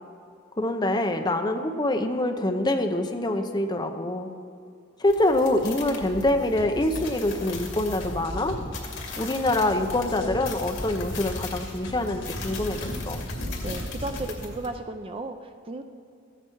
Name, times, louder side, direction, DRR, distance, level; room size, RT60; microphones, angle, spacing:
voice 1, 0.6-4.3 5.0-8.6 9.2-13.2, left 1 dB, 20° left, 5 dB, 0.7 m, -25 dB
sound 1, 5.0-14.7, left 2 dB, 80° left, 2.3 m, -36 dB
sound 2, 6.6-14.2, left 1 dB, 65° left, 2.1 m, -42 dB
voice 2, 13.6-15.8, right 2 dB, 25° right, 7 dB, 0.4 m, -34 dB
14.5 x 9.1 x 4.6 m, 2.4 s
head